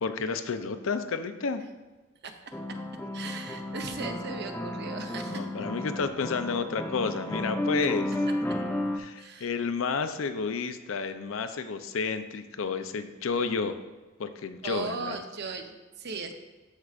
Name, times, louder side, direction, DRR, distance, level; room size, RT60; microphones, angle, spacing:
voice 1, 0.0-1.6 5.3-8.1 9.0-13.8 14.2-15.2, left 5 dB, 75° left, 9 dB, 0.5 m, -31 dB
voice 2, 2.2-2.8 3.1-5.5 8.5-8.6 9.2-9.5 14.6-16.3, right 4 dB, 55° right, 5 dB, 0.7 m, -38 dB
sound 1, 2.5-9.0, left 1 dB, 10° left, 0.4 m, -33 dB
13.0 x 4.7 x 2.5 m, 1.2 s
head